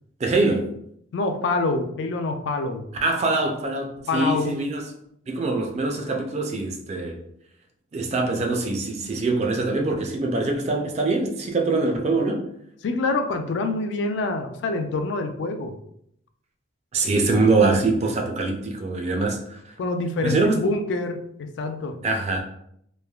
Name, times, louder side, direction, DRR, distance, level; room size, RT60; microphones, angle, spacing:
voice 1, 0.2-0.7 3.0-4.9 5.3-7.2 7.9-12.4 16.9-19.6 20.2-20.6 22.0-22.4, right 3 dB, 35° right, 0.3 m, -23 dB
voice 2, 1.1-2.9 4.1-4.6 12.8-15.7 19.8-22.0, left 3 dB, 65° left, 0.3 m, -26 dB
3.1 x 2.1 x 2.2 m
head